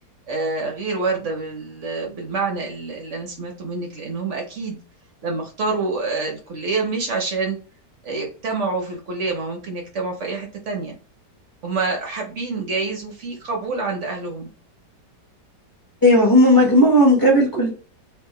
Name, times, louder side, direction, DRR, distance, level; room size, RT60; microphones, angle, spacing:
voice 1, 0.3-4.8 5.2-7.6 8.0-11.0 11.6-14.5, right 3 dB, 60° right, 1 dB, 0.8 m, -27 dB
voice 2, 16.0-17.7, equal, 15° left, -3 dB, 1.2 m, -14 dB
2.9 x 2.6 x 3.6 m, 0.38 s
omnidirectional pair, 1.9 m